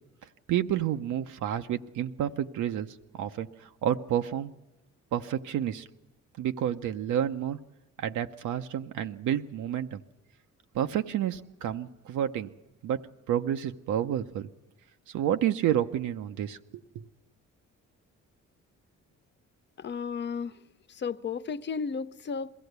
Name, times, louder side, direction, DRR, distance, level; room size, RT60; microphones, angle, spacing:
voice 1, 0.5-4.5 5.1-5.9 6.4-7.6 8.0-10.0 10.7-12.5 12.8-14.5 15.1-17.1, right 10 dB, 80° right, 0.7 m, -30 dB
voice 2, 19.8-20.5 20.9-22.5, left 5 dB, 35° left, 0.6 m, -33 dB
21.5 x 15.5 x 8.0 m
cardioid pair, 90°, 30 cm